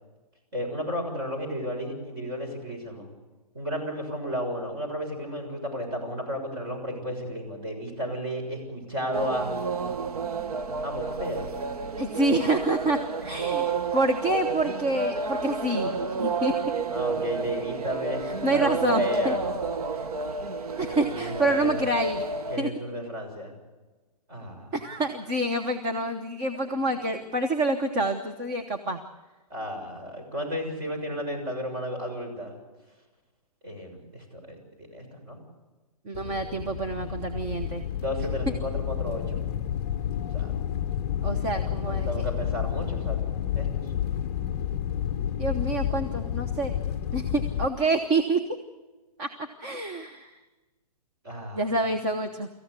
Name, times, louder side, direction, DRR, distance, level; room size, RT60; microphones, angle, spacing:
voice 1, 0.5-3.1 3.5-9.5 10.8-11.5 16.9-19.4 20.8-21.8 22.5-23.5 24.3-24.7 29.5-32.5 33.6-35.4 37.9-39.5 40.3-40.5 41.3-43.2 43.5-43.9 51.2-51.7, equal, 35° right, 3 dB, 6.7 m, -33 dB
sound 1, 9.1-22.6, right 4 dB, 70° right, 1.2 m, -30 dB
voice 2, 12.0-16.5 18.2-19.4 20.0-20.1 20.8-22.2 22.6-22.7 24.7-29.0 36.1-37.9 38.5-38.6 41.2-42.2 45.4-46.7 47.1-48.4 49.2-49.3 49.6-50.3 51.5-52.5, right 2 dB, 20° right, 5 dB, 1.0 m, -27 dB
sound 2, 36.1-47.7, left 10 dB, 25° left, 0.7 m, -30 dB
26.0 x 15.0 x 8.3 m, 1.2 s
hypercardioid pair, 165°, 20 cm